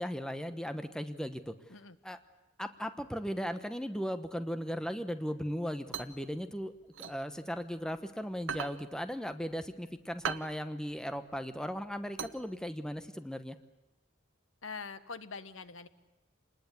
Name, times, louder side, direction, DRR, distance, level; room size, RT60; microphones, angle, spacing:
voice 1, 0.0-1.5 2.0-2.2 2.6-6.7 7.0-13.6, equal, 5° left, 10 dB, 1.0 m, -37 dB
sound 1, 5.5-8.0 8.3-13.0, right 6 dB, 75° right, 1.1 m, -41 dB
voice 2, 14.6-15.9, left 5 dB, 80° left, 13 dB, 1.3 m, -43 dB
27.5 x 20.0 x 8.3 m, 1.0 s
head